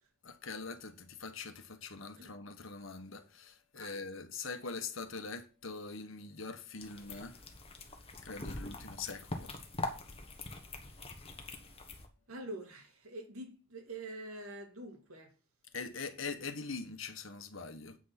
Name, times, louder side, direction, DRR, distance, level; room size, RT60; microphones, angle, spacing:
voice 1, 0.2-7.4 8.2-9.5 15.7-18.0, left 4 dB, 65° left, 1.4 m, -43 dB
sound 1, 6.8-12.1, left 2 dB, 25° left, 1.4 m, -43 dB
voice 2, 12.3-15.3, right 1 dB, 85° right, 2.4 m, -46 dB
8.5 x 6.2 x 6.0 m
head